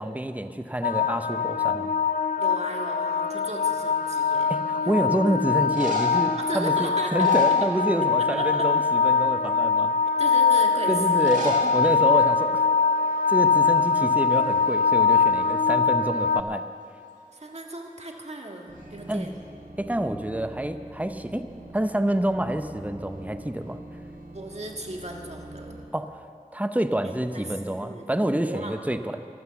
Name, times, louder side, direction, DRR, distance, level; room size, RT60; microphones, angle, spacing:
voice 1, 0.0-1.9 4.5-9.9 10.9-12.7 13.3-16.7 19.1-19.3 19.8-21.5 21.7-23.8 25.9-26.1 26.5-29.2, right 1 dB, 10° right, 9 dB, 0.7 m, -27 dB
sound 1, 0.8-16.4, left 5 dB, 80° left, 0.5 m, -22 dB
voice 2, 2.4-4.6 6.4-7.3 8.2-8.7 10.2-11.7 17.3-19.4 24.3-25.8 27.0-28.1 28.4-29.2, right 1 dB, 50° right, 1 dB, 1.7 m, -37 dB
sound 2, 4.1-4.6 5.5-6.3 7.0-8.2 8.5-8.9 9.4-9.5 11.1-11.7 12.0-12.1 12.3-12.4 13.1-13.3 13.6-14.8 18.8-19.4, left 1 dB, 65° right, 2.6 m, -37 dB
sound 3, 18.7-25.8, right 1 dB, 85° right, 1.9 m, -44 dB
14.0 x 12.0 x 7.0 m, 2.6 s
wide cardioid pair, 45°, 14 cm